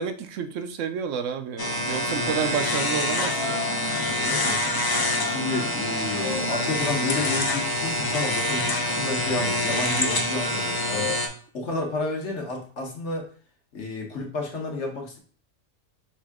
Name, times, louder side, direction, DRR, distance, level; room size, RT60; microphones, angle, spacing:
voice 1, 0.0-3.7, right 7 dB, 75° right, 8 dB, 0.9 m, -30 dB
sound 1, 1.6-11.3, left 1 dB, 30° left, 0.4 m, -26 dB
voice 2, 4.0-4.6 5.2-11.1 11.5-13.3 13.7-15.2, left 2 dB, 60° left, 0 dB, 1.5 m, -31 dB
5.5 x 2.6 x 3.5 m, 0.42 s
omnidirectional pair, 1.3 m